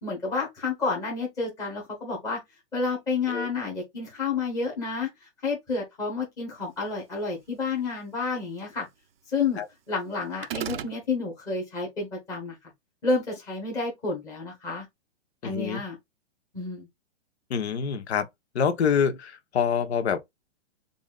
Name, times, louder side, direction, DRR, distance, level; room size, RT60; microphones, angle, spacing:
voice 1, 0.0-2.4 2.7-5.1 5.4-8.9 9.3-9.6 9.9-12.6 13.0-14.8 15.4-16.0 16.5-16.9, left 4 dB, 10° left, 1.2 m, -30 dB
sound 1, 10.4-11.0, right 10 dB, 55° right, 0.5 m, -32 dB
voice 2, 15.4-15.8 17.5-18.3 18.5-20.2, left 7 dB, 60° left, 1.1 m, -26 dB
6.9 x 2.6 x 2.4 m
hypercardioid pair, 180°, 36 cm